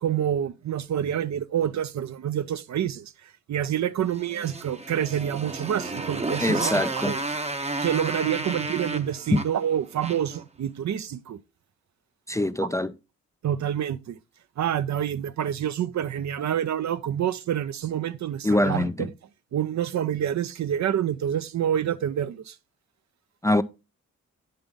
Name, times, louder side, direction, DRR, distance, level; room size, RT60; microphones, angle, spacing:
voice 1, 0.0-3.0 3.5-6.8 7.1-7.2 7.8-11.4 13.4-14.2 14.6-18.8 19.5-22.5, right 10 dB, 55° right, 0.6 m, -27 dB
Motorcycle, 4.1-10.4, right 2 dB, 20° right, 0.8 m, -32 dB
voice 2, 6.4-7.2 12.3-12.9 18.4-19.1 23.4-23.6, left 1 dB, 10° left, 0.4 m, -24 dB
8.6 x 5.6 x 3.5 m
supercardioid pair, 45°, 33 cm